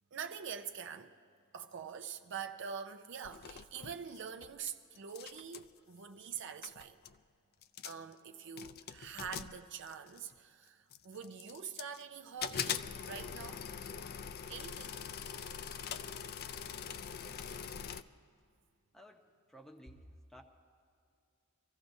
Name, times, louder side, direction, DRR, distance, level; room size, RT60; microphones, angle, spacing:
voice 1, 0.1-1.1 1.5-7.0 7.8-13.6 14.5-15.0, right 7 dB, 60° right, 0.5 m, -45 dB
sound 1, 3.2-4.7 5.0-5.7 6.4-6.5 6.6-7.2 7.6-8.1 8.6-10.3 10.9-12.0 12.4-18.0, left 8 dB, 45° left, 0.4 m, -43 dB
voice 2, 18.9-20.4, equal, ahead, 0.8 m, -56 dB
24.5 x 15.0 x 2.7 m
head